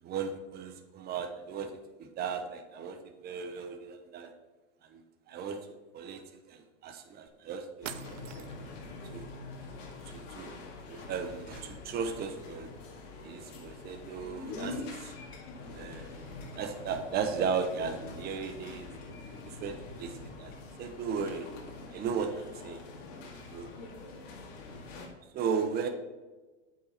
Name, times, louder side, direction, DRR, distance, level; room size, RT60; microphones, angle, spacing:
voice 1, 0.0-1.7 2.0-4.3 4.9-5.0 5.3-5.6 5.9-6.2 6.5-7.9 8.3-8.5 9.0-9.2 10.1-10.5 10.9-12.7 13.2-15.1 15.7-20.5 20.8-21.5 21.9-22.8 23.4-23.7 25.3-25.9, right 6 dB, 25° right, 6 dB, 0.9 m, -36 dB
sound 1, 7.3-7.4 7.8-8.8, right 11 dB, 85° right, 0.7 m, -44 dB
sound 2, 7.8-25.1, left 3 dB, 45° left, 2.1 m, -45 dB
8.2 x 5.8 x 4.3 m, 1.2 s
hypercardioid pair, 130°, 36 cm